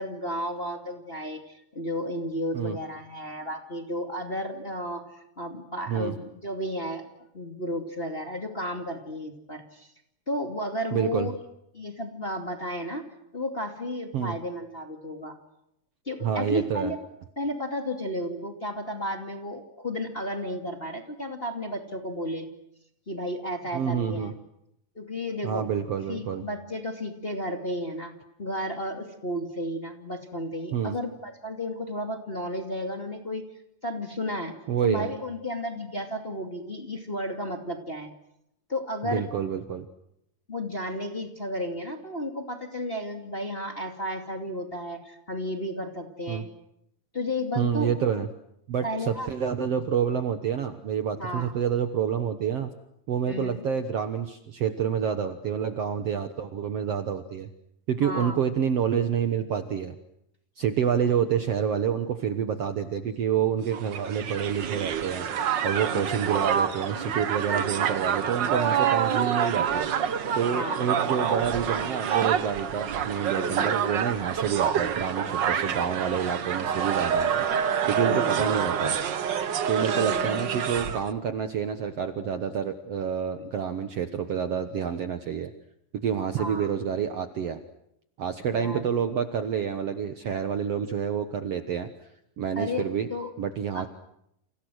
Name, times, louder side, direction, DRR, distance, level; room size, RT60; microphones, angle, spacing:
voice 1, 0.0-7.0 7.3-9.9 10.3-11.3 11.7-13.0 13.3-15.3 16.1-17.0 17.4-22.5 23.1-24.3 25.0-25.6 26.1-28.1 28.4-33.4 33.8-34.5 34.8-38.1 38.7-39.3 40.5-46.5 47.1-47.9 48.8-49.3 51.2-51.5 53.2-53.6 58.0-58.4 65.9-66.4 70.5-70.8 73.3-73.8 78.0-78.4 79.9-80.4 83.4-83.5 86.4-86.7 88.5-89.0 92.6-93.3 93.7-93.9, left 1 dB, 20° left, 3 dB, 2.3 m, -33 dB
voice 2, 10.9-11.3 14.1-14.3 16.2-16.9 23.7-24.3 25.4-26.4 30.7-31.0 34.7-35.1 39.0-39.9 46.3-46.4 47.6-48.3 48.7-52.7 53.1-57.5 57.9-59.9 60.6-65.3 65.6-69.9 70.4-77.5 77.9-79.0 79.7-85.5 85.9-87.6 88.2-91.9 92.4-93.1 93.4-93.9, right 8 dB, 60° right, 8 dB, 1.9 m, -28 dB
Crowd, 63.7-81.1, right 8 dB, 85° right, 1.0 m, -27 dB
29.5 x 29.0 x 6.4 m, 0.79 s
omnidirectional pair, 3.9 m